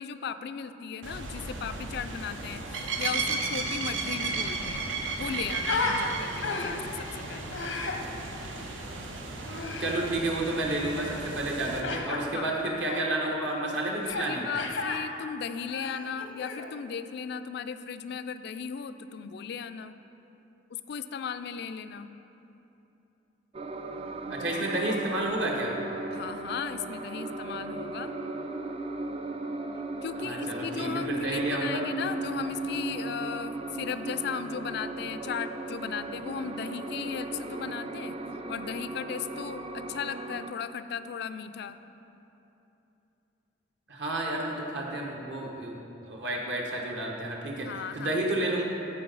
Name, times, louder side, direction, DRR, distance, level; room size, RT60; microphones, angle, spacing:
voice 1, 0.0-4.8 5.2-7.6 12.3-12.5 14.3-19.9 20.7-22.1 26.1-28.1 30.0-38.2 38.5-41.8 47.6-48.2, left 7 dB, 60° left, 11 dB, 0.3 m, -36 dB
sound 1, 1.0-11.8, right 4 dB, 85° right, 0.8 m, -35 dB
Human voice, 4.0-4.1 4.4-6.0 6.4-6.9 7.5-8.0 9.5-10.0 11.8-12.2 12.8-13.1 14.0-14.3 14.5-15.0 15.6-16.7, left 4 dB, 90° left, 0.8 m, -33 dB
voice 2, 9.8-14.6 24.3-25.7 30.2-31.8 43.9-47.7 47.9-48.6, right 1 dB, 65° right, -1 dB, 1.2 m, -30 dB
sound 2, 23.5-40.5, right 2 dB, 30° right, 0.4 m, -37 dB
13.5 x 4.8 x 3.9 m, 3.0 s
head